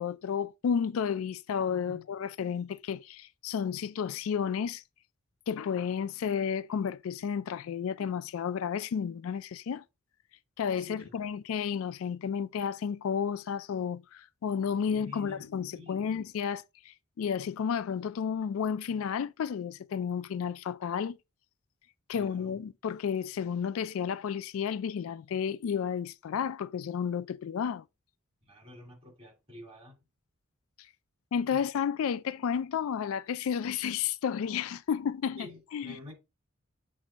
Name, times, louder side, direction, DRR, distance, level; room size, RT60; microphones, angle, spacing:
voice 1, 0.0-4.8 5.5-9.8 10.6-21.2 22.1-27.8 31.3-36.0, left 7 dB, 70° left, 0.3 m, -32 dB
voice 2, 15.0-15.5 15.7-16.2 22.2-22.6 28.5-29.9 31.5-31.6 35.4-36.1, left 2 dB, 25° right, 2.7 m, -48 dB
7.4 x 2.6 x 5.1 m
head